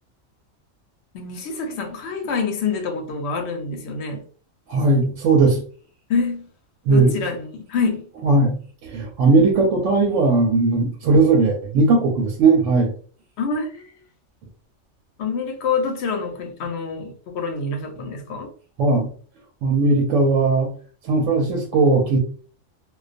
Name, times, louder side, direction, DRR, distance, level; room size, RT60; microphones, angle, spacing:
voice 1, 1.1-4.2 6.1-6.5 6.9-8.1 13.4-13.9 15.2-18.5, left 4 dB, 60° left, 0.8 m, -26 dB
voice 2, 4.7-5.6 6.9-7.1 8.2-8.5 8.8-12.9 18.8-19.1 19.6-20.7 21.0-22.2, right 3 dB, 70° right, 0.9 m, -18 dB
2.3 x 2.2 x 2.5 m
omnidirectional pair, 1.4 m